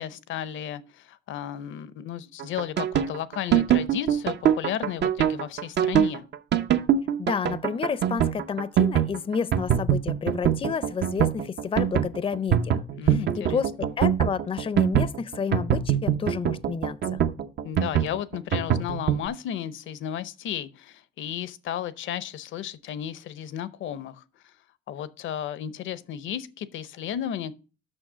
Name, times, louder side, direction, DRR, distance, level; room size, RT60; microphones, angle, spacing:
voice 1, 0.0-6.3 13.0-13.9 17.6-24.5 24.9-27.5, left 10 dB, 75° left, 0.7 m, -34 dB
sound 1, 2.4-19.2, right 9 dB, 60° right, 0.7 m, -23 dB
voice 2, 7.2-17.2, left 6 dB, 25° left, 0.5 m, -30 dB
6.4 x 6.1 x 6.1 m
cardioid pair, 90°, 20 cm